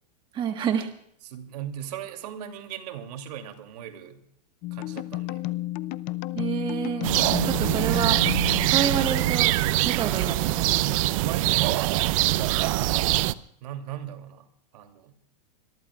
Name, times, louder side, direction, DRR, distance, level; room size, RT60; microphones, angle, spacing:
voice 1, 0.3-0.9 6.3-7.1 7.4-8.2 8.6-9.6 9.8-10.8, right 8 dB, 25° right, 5 dB, 1.4 m, -28 dB
voice 2, 1.2-4.2 4.7-5.4 11.2-11.8 12.2-12.6 13.6-14.5 14.7-15.1, right 10 dB, 70° right, 6 dB, 2.8 m, -38 dB
sound 1, 4.6-9.5, left 17 dB, 40° left, 0.6 m, -32 dB
sound 2, 7.0-13.3, right 15 dB, 50° right, 0.7 m, -23 dB
26.0 x 22.0 x 2.4 m, 0.69 s
supercardioid pair, 145°, 21 cm